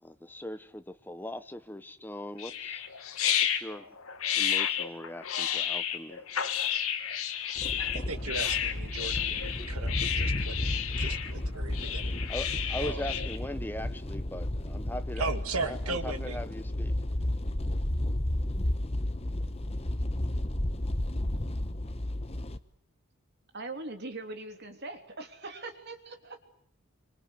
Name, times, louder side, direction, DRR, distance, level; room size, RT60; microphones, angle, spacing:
voice 1, 0.0-2.8 3.5-4.0 4.3-6.3 12.3-15.3 15.6-16.9, left 1 dB, 10° left, 1.1 m, -40 dB
sound 1, 2.4-13.4, left 9 dB, 80° left, 2.4 m, -31 dB
sound 2, 7.6-22.6, left 1 dB, 30° left, 1.1 m, -32 dB
voice 2, 7.9-10.7 11.0-12.2 12.8-13.0 15.2-16.4, right 3 dB, 85° right, 2.3 m, -37 dB
voice 3, 23.5-26.4, right 2 dB, 50° right, 3.3 m, -41 dB
26.5 x 25.5 x 8.2 m
head